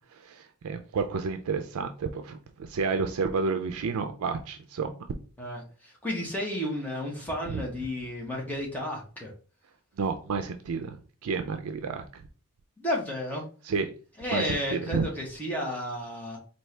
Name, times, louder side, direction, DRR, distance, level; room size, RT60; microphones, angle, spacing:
voice 1, 0.2-4.9 7.5-7.6 10.0-11.0 11.2-12.2 13.6-13.9 14.3-15.1, right 4 dB, 85° right, 7 dB, 0.4 m, -30 dB
voice 2, 5.4-9.3 12.8-13.4 14.2-16.4, equal, 5° left, -2 dB, 1.1 m, -32 dB
4.3 x 2.7 x 3.3 m, 0.38 s
head